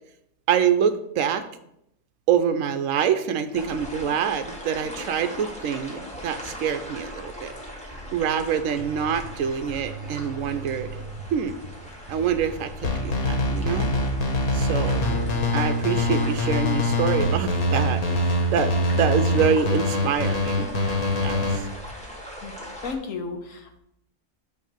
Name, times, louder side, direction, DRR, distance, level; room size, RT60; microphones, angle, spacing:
voice 1, 0.5-1.4 2.3-7.5 8.1-10.9 11.3-11.5 12.1-13.9 14.5-15.0 15.5-20.7 21.2-21.7, right 7 dB, 70° right, 9 dB, 0.9 m, -25 dB
sound 1, 3.5-22.9, equal, 5° left, 1.4 m, -39 dB
sound 2, 8.8-9.3 9.7-11.7 12.1-14.2 14.5-16.5 16.9-18.4, right 6 dB, 45° right, 0.8 m, -38 dB
sound 3, 12.8-21.6, left 1 dB, 85° left, 1.7 m, -24 dB
voice 2, 22.8-23.8, left 4 dB, 70° left, 5 dB, 1.3 m, -33 dB
9.1 x 3.3 x 5.0 m, 0.78 s
omnidirectional pair, 1.5 m